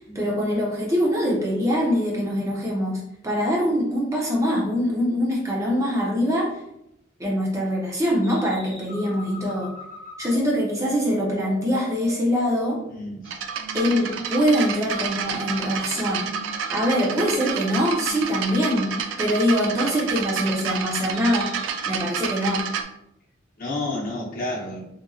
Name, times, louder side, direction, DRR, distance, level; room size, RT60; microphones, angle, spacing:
voice 1, 0.1-6.6 7.2-9.7 10.2-12.8 13.7-16.3 16.7-18.9 19.2-21.5 21.9-22.7, equal, 15° right, -3 dB, 0.5 m, -23 dB
sound 1, 8.2-13.2 13.5-14.0 14.4-14.9 15.3-15.7 16.1-16.6 16.9-17.5 17.8-18.3 18.6-19.1 19.4-19.9 20.3-20.8 21.1-21.6, equal, 10° left, 1.2 m, -42 dB
voice 2, 12.9-13.3 23.6-24.8, left 2 dB, 50° left, -4 dB, 0.8 m, -30 dB
sound 2, 13.3-22.8, right 6 dB, 80° right, 0.3 m, -30 dB
2.9 x 2.5 x 2.2 m, 0.81 s
head